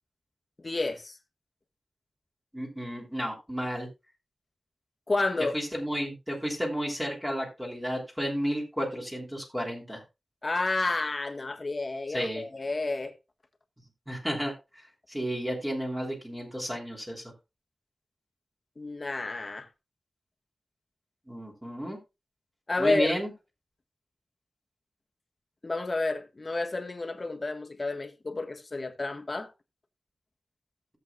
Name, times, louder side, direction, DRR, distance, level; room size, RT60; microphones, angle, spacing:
voice 1, 0.6-1.2 5.1-5.5 10.4-13.1 18.8-19.7 22.7-23.1 25.6-29.5, left 2 dB, 35° left, 1.4 m, -30 dB
voice 2, 2.5-3.9 5.5-10.0 12.1-12.4 14.1-17.2 21.3-22.0 22.8-23.3, equal, 10° right, 3.1 m, -32 dB
16.5 x 7.6 x 2.4 m
wide cardioid pair, 110°, 0 cm